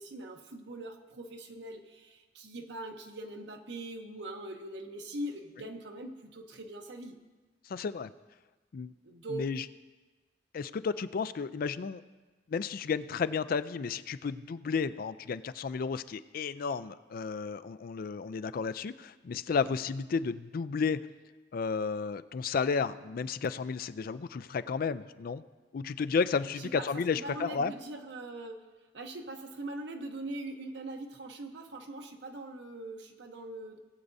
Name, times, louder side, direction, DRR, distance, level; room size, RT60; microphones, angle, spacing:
voice 1, 0.0-7.2 9.0-9.5 26.6-28.6 28.9-33.8, right 1 dB, 70° right, 4 dB, 0.9 m, -42 dB
voice 2, 7.7-8.1 8.7-8.9 9.3-9.6 10.5-12.0 12.5-21.0 21.5-25.4 25.7-27.7, left 5 dB, 50° left, 14 dB, 0.4 m, -32 dB
19.0 x 8.1 x 2.7 m, 1.2 s
head